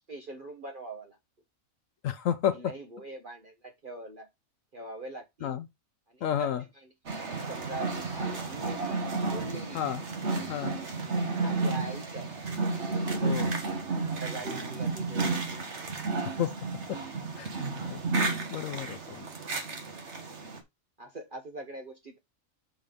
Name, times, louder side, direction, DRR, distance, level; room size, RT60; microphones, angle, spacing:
voice 1, 0.1-1.2 2.5-4.3 4.7-5.6 6.1-6.9 7.4-9.0 9.3-9.8 11.4-12.3 13.0-13.2 14.2-15.6 21.0-22.2, right 2 dB, 40° right, 1.2 m, -42 dB
voice 2, 2.0-2.6 5.4-5.6 6.2-6.6 9.7-10.0 10.5-10.8 13.2-13.5 16.4-16.6 16.9-17.0 17.4-17.5 17.9-18.0 18.5-19.2, left 10 dB, 75° left, 1.0 m, -30 dB
sound 1, 7.1-20.6, right 3 dB, 55° right, 1.6 m, -32 dB
6.9 x 3.8 x 5.1 m
omnidirectional pair, 1.4 m